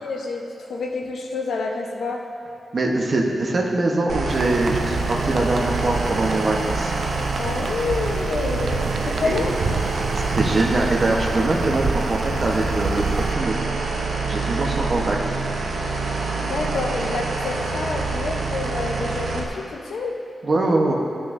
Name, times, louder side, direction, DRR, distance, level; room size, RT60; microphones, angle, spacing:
voice 1, 0.0-2.2 7.4-9.5 16.4-20.2, left 3 dB, 75° left, 1 dB, 0.8 m, -28 dB
voice 2, 2.7-6.9 9.1-9.3 10.1-13.6 14.2-15.2 20.4-20.9, right 2 dB, 40° right, 0 dB, 0.9 m, -23 dB
sound 1, 4.1-19.5, right 3 dB, 85° right, 0.8 m, -26 dB
sound 2, 4.3-13.3, right 4 dB, 60° right, 0.5 m, -30 dB
13.5 x 6.1 x 2.6 m, 2.4 s
wide cardioid pair, 155°, 0 cm